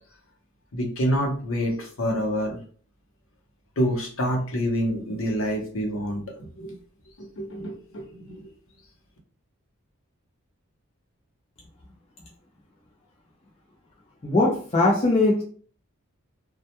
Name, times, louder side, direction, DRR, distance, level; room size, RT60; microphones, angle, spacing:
voice 1, 0.7-2.6 3.8-6.7 7.2-8.4, equal, 65° left, 1 dB, 0.7 m, -27 dB
voice 2, 14.2-15.4, left 2 dB, 30° left, -2 dB, 0.4 m, -20 dB
2.2 x 2.1 x 2.8 m, 0.43 s
head